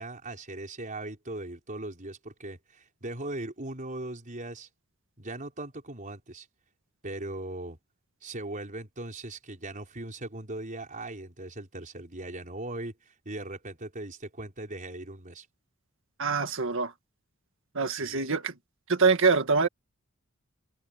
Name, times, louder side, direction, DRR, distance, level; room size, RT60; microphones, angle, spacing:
voice 1, 0.0-4.7 5.2-6.5 7.0-7.8 8.2-15.5 17.9-18.3, right 2 dB, 40° right, 5.0 m, -39 dB
voice 2, 16.2-16.9 17.8-18.5 18.9-19.7, right 4 dB, 65° right, 1.9 m, -24 dB
head